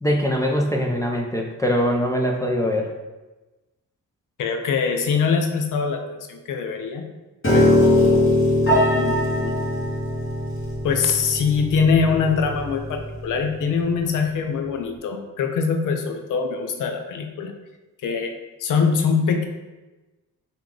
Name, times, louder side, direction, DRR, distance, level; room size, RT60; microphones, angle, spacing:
voice 1, 0.0-2.9, equal, 10° left, 0 dB, 0.5 m, -22 dB
voice 2, 4.4-7.0 7.5-8.3 8.9-9.6 10.8-17.5 18.0-18.3 18.6-19.5, left 5 dB, 70° left, 5 dB, 0.6 m, -23 dB
Piano, 7.4-13.6, left 1 dB, 40° left, 1.4 m, -21 dB
3.7 x 2.8 x 3.7 m, 1.1 s
cardioid pair, 70°, 33 cm